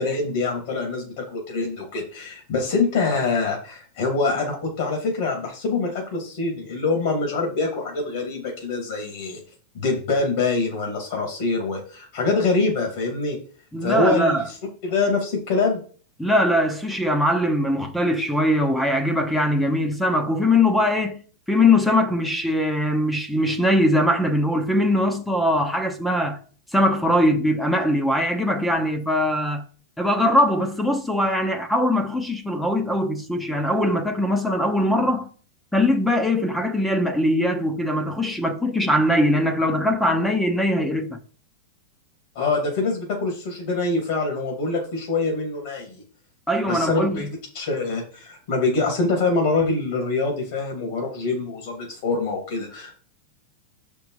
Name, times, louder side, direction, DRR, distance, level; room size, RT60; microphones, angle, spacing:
voice 1, 0.0-9.4 9.7-13.4 13.8-14.6 14.8-15.8 42.3-46.0 46.7-47.2 47.5-52.9, left 3 dB, 60° left, 2.5 m, -24 dB
voice 2, 13.7-14.4 16.2-21.2 21.5-26.4 26.7-29.6 30.0-35.3 35.7-41.2 46.5-47.3, left 1 dB, 5° left, 0.8 m, -21 dB
6.5 x 5.3 x 4.8 m
supercardioid pair, 155°, 0 cm